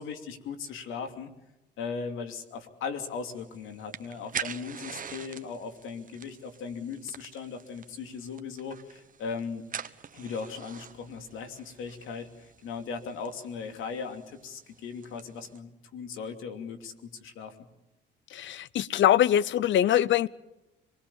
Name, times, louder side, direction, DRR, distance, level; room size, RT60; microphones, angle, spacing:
voice 1, 0.0-1.3 1.8-9.6 10.1-17.6, left 5 dB, 90° left, 6 dB, 2.8 m, -38 dB
sound 1, 3.1-15.6, right 7 dB, 45° right, 1.3 m, -44 dB
voice 2, 18.3-20.3, left 11 dB, 70° left, 20 dB, 0.8 m, -23 dB
26.5 x 20.0 x 7.1 m, 0.97 s
cardioid pair, 90°, 20 cm